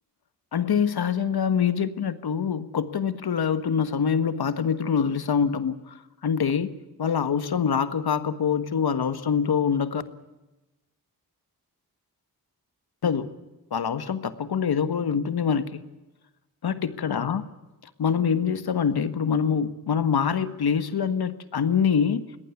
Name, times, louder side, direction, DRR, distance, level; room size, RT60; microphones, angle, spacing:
voice 1, 0.5-5.9 6.2-6.7 7.0-10.0 13.0-13.3 13.7-15.8 16.6-17.4 18.0-22.2, left 7 dB, 70° left, 11 dB, 1.6 m, -25 dB
23.0 x 18.0 x 8.3 m, 1.0 s
cardioid pair, 70°, 39 cm